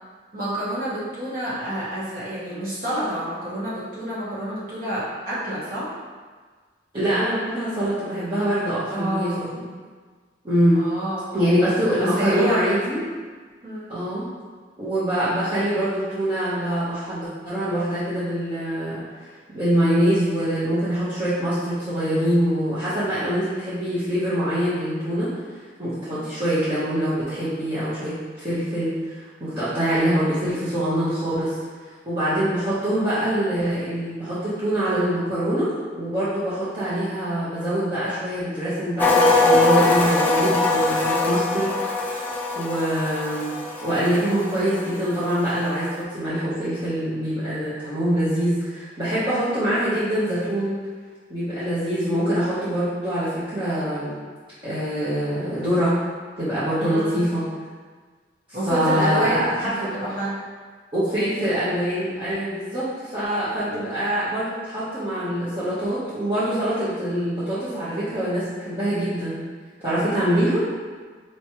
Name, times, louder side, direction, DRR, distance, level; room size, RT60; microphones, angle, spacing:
voice 1, 0.3-5.9 8.9-9.4 10.7-11.3 12.0-12.7 13.6-14.0 26.1-26.4 56.8-57.2 58.5-60.4 63.6-63.8, equal, 50° right, -9 dB, 1.4 m, -28 dB
voice 2, 6.9-9.6 10.4-10.8 11.3-13.0 13.9-14.3 14.8-19.3 19.5-25.3 25.8-31.5 32.1-42.1 42.5-43.5 43.8-50.8 51.3-54.2 54.6-56.0 56.4-57.4 58.7-59.9 60.9-69.4 69.8-70.6, equal, 30° right, -14 dB, 1.0 m, -24 dB
sound 1, 39.0-45.0 45.3-45.5, left 2 dB, 10° left, 0.4 m, -21 dB
4.4 x 3.1 x 3.0 m, 1.5 s
head